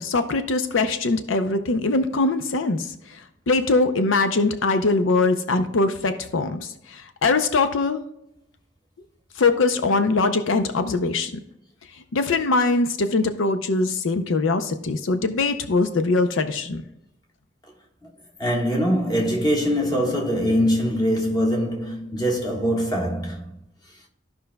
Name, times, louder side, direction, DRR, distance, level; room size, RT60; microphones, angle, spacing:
voice 1, 0.0-8.0 9.4-11.3 12.1-16.8, left 3 dB, 80° left, 0.6 m, -22 dB
voice 2, 18.4-23.5, equal, 20° left, 1.4 m, -23 dB
14.0 x 5.3 x 2.2 m
head